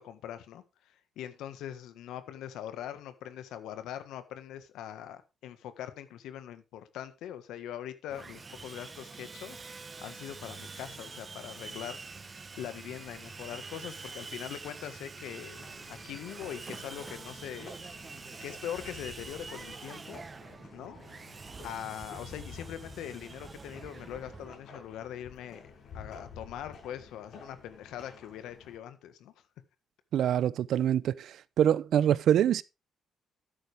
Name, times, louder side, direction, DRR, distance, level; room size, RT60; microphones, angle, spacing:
voice 1, 0.0-15.6 15.9-18.1 18.4-20.2 20.7-21.1 21.6-29.3, left 10 dB, 85° left, 1.5 m, -42 dB
Sawing, 8.1-24.5, right 4 dB, 30° right, 1.0 m, -46 dB
sound 1, 15.5-28.8, left 5 dB, 70° left, 5.9 m, -51 dB
voice 2, 30.1-32.6, right 10 dB, 70° right, 0.6 m, -25 dB
12.0 x 9.6 x 3.5 m
cardioid pair, 90°, 0 cm